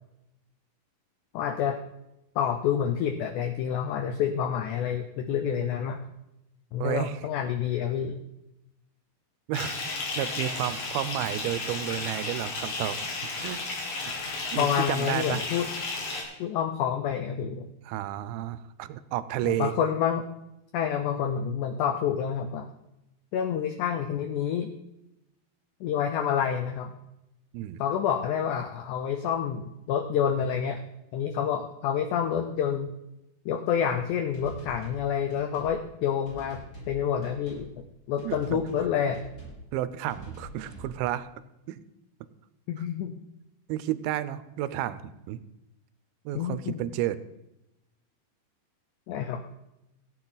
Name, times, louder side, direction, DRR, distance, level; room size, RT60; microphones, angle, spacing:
voice 1, 1.3-1.8 2.3-6.0 6.7-8.2 14.6-15.7 16.4-17.7 19.4-20.3 20.7-22.7 23.3-24.7 25.8-27.0 27.8-30.8 31.1-32.9 33.4-37.7 38.1-39.2 42.7-43.2 46.3-46.8 49.1-49.4, left 8 dB, 85° left, 8 dB, 1.7 m, -28 dB
voice 2, 6.8-7.2 9.5-9.8 10.2-13.1 13.4-13.9 14.5-15.4 17.9-19.7 27.5-27.8 38.2-38.4 39.7-41.3 41.7-41.8 43.7-45.4 46.3-47.2, right 13 dB, 85° right, 15 dB, 2.5 m, -31 dB
Bathtub (filling or washing) / Fill (with liquid), 9.5-16.2, left 3 dB, 65° left, 3.6 m, -33 dB
sound 1, 34.3-35.0 35.3-35.7 36.2-36.9 37.2-37.6 38.2-38.8 39.1-39.6 40.1-40.9, right 2 dB, 25° left, 6.4 m, -44 dB
16.5 x 9.1 x 3.9 m, 0.91 s
omnidirectional pair, 4.3 m